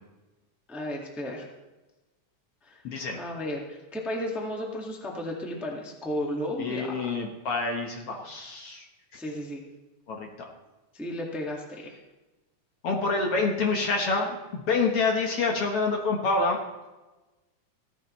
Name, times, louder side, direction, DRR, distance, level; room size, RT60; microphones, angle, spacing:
voice 1, 0.7-1.4 2.6-2.8 3.2-7.0 9.1-9.6 10.9-11.9, left 1 dB, ahead, -1 dB, 1.1 m, -33 dB
voice 2, 2.8-3.2 6.6-8.9 10.1-10.5 12.8-16.6, left 3 dB, 55° left, 2 dB, 2.0 m, -27 dB
16.5 x 14.5 x 3.2 m, 1.1 s
omnidirectional pair, 3.4 m